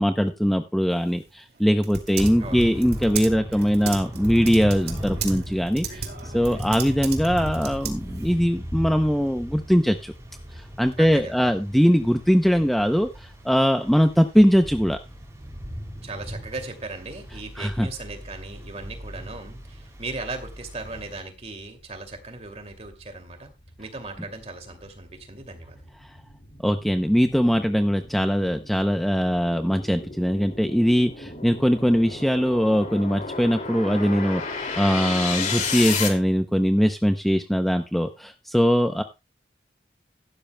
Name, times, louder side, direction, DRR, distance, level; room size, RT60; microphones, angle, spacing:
voice 1, 0.0-10.1 10.5-15.0 17.6-17.9 26.6-39.0, equal, ahead, 7 dB, 0.5 m, -21 dB
Typing, 0.9-8.4, right 5 dB, 65° right, 2.4 m, -36 dB
Thunder / Rain, 2.2-21.2, equal, 15° right, 3.7 m, -37 dB
voice 2, 11.0-11.5 16.0-23.5 23.8-25.8, right 3 dB, 35° right, 6 dB, 2.5 m, -37 dB
sound 1, 21.4-21.5 22.0-36.1, left 5 dB, 45° left, 2.5 m, -34 dB
15.5 x 12.0 x 2.2 m, 0.27 s
head